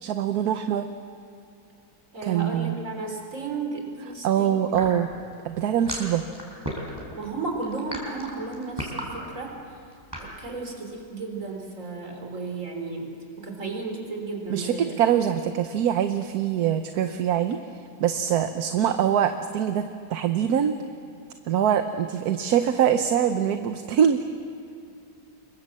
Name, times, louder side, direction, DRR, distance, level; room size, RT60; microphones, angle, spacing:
voice 1, 0.0-0.9 2.2-2.8 4.2-5.1 5.4-6.2 14.5-17.6 18.0-19.8 20.1-20.8 21.5-24.2, right 9 dB, 75° right, 8 dB, 1.4 m, -23 dB
voice 2, 2.1-4.7 7.1-9.8 10.2-13.1 13.4-14.9, right 3 dB, 55° right, 2 dB, 4.2 m, -34 dB
sound 1, 4.7-10.3, equal, 15° right, 4.9 m, -35 dB
26.0 x 22.5 x 7.5 m, 2.5 s
omnidirectional pair, 1.6 m